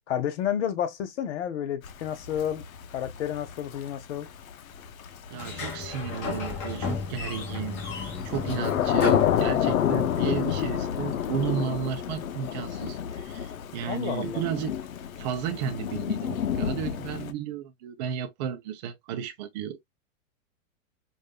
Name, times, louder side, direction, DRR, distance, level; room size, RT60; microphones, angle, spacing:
voice 1, 0.1-2.7 2.9-4.3 13.9-14.4, left 9 dB, 55° left, 1.2 m, -30 dB
Thunder / Rain, 1.8-17.3, left 9 dB, 85° left, 0.8 m, -29 dB
Sliding door, 5.3-10.1, left 4 dB, 30° left, 1.8 m, -34 dB
voice 2, 5.3-7.8 8.2-14.7 15.2-19.9, right 8 dB, 35° right, 0.6 m, -33 dB
5.1 x 2.6 x 2.2 m
hypercardioid pair, 150°, 41 cm